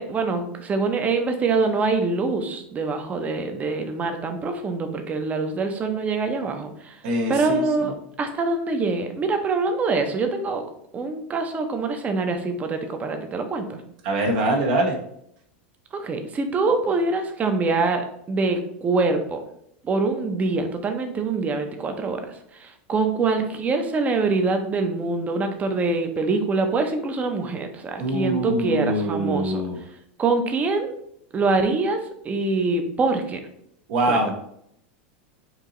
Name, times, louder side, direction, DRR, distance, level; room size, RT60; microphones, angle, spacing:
voice 1, 0.0-6.9 7.3-10.6 10.9-13.8 15.9-18.0 18.3-19.4 19.8-22.2 22.6-29.6 30.2-30.9 31.3-32.0 32.2-33.4 34.1-34.2, right 3 dB, 25° right, 6 dB, 0.7 m, -24 dB
voice 2, 7.0-7.9 14.0-15.0 28.0-29.8 33.9-34.3, right 1 dB, 60° right, 1 dB, 1.1 m, -24 dB
4.6 x 2.8 x 3.8 m, 0.72 s
supercardioid pair, 120°, 6 cm